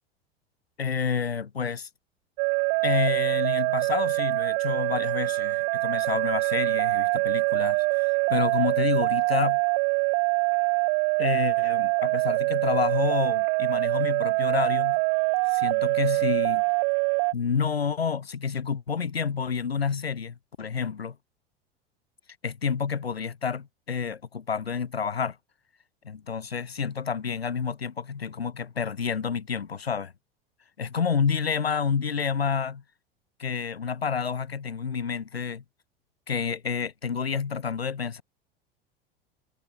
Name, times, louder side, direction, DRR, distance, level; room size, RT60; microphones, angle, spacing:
voice 1, 0.8-1.9 2.8-9.6 11.2-15.0 15.5-16.6 17.3-21.2 22.4-25.4 26.0-30.1 30.8-32.8 33.4-35.6 36.3-38.2, left 6 dB, 80° left, 5.0 m, -29 dB
sound 1, 2.4-17.3, right 40 dB or more, 45° right, 0.5 m, -24 dB
figure-of-eight pair, 80°, 30 cm